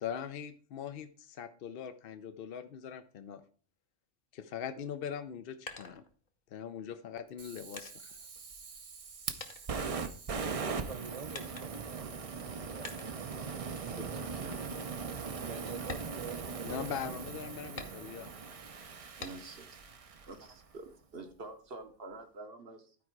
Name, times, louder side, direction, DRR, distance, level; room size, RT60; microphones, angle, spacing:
voice 1, 0.0-3.4 4.3-6.0 6.5-8.2 16.6-18.3, left 8 dB, 60° left, 0.7 m, -41 dB
sound 1, 5.2-6.6 7.3-9.1 9.4-10.6 11.3-12.0 12.8-13.3 13.8-14.0 14.5-14.6 15.0-15.2 15.8-17.0 17.8-18.4 19.2-19.7 20.1-21.0, left 3 dB, 40° left, 1.1 m, -48 dB
Fire, 7.4-20.5, right 5 dB, 40° right, 0.6 m, -40 dB
voice 2, 10.5-13.5 13.9-14.2 15.2-16.9, right 7 dB, 80° right, 0.3 m, -47 dB
voice 3, 14.0-14.7 19.2-19.6 20.3-23.0, right 3 dB, 55° right, 1.2 m, -47 dB
12.0 x 4.8 x 4.6 m
omnidirectional pair, 1.3 m